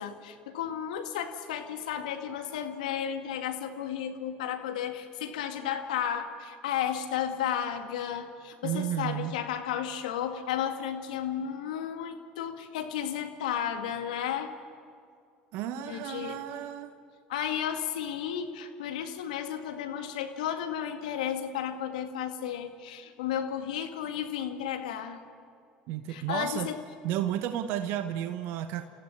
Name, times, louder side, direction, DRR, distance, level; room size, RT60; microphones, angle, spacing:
voice 1, 0.0-14.5 15.8-16.4 17.3-25.2 26.1-26.8, left 9 dB, 80° left, 6 dB, 2.0 m, -33 dB
voice 2, 8.6-9.3 15.5-17.0 25.9-26.7 27.0-28.9, right 11 dB, 65° right, 9 dB, 1.1 m, -32 dB
29.5 x 15.0 x 8.6 m, 2.3 s
hypercardioid pair, 75°, 4 cm